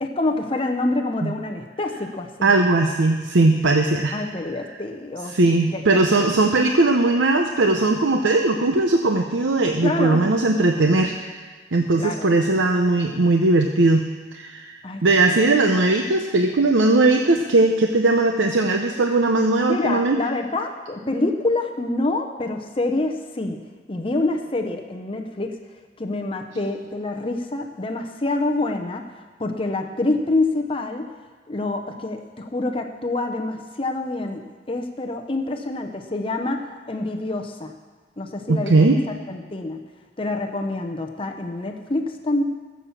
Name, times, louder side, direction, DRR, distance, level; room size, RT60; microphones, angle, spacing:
voice 1, 0.0-2.5 4.1-5.3 5.7-6.3 9.8-10.3 12.0-12.3 14.8-15.0 15.3-15.8 19.6-23.6 23.9-25.5 26.0-29.0 29.4-31.1 31.5-36.6 36.9-37.7 38.2-38.9 39.3-39.8 40.2-42.4, left 2 dB, 30° left, 4 dB, 0.8 m, -26 dB
voice 2, 2.4-4.1 5.3-11.4 11.7-14.1 14.3-20.2 38.5-39.0, right 2 dB, 90° right, 4 dB, 0.7 m, -19 dB
14.5 x 7.2 x 7.2 m, 1.4 s
head